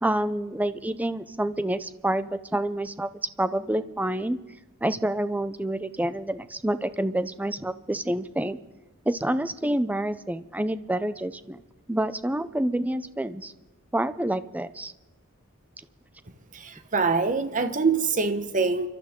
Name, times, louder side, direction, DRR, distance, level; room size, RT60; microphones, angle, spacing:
voice 1, 0.0-3.1 3.4-4.4 4.8-8.6 9.1-11.6 11.9-13.5 13.9-14.9, right 1 dB, 5° right, 13 dB, 0.5 m, -28 dB
voice 2, 16.5-18.9, right 4 dB, 40° right, 9 dB, 1.0 m, -24 dB
29.5 x 12.5 x 3.7 m, 1.1 s
head